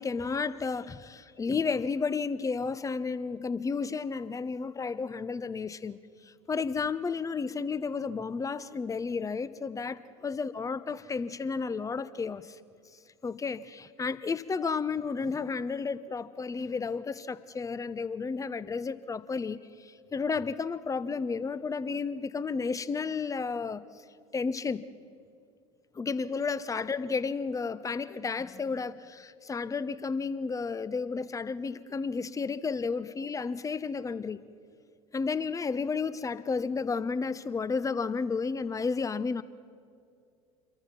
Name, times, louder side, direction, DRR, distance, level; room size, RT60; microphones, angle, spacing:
voice 1, 0.0-6.0 6.2-12.6 13.2-23.8 24.3-24.8 25.9-34.4 35.1-39.4, left 5 dB, 20° left, 1.0 m, -32 dB
28.0 x 22.5 x 6.0 m
figure-of-eight pair, 70°, 17 cm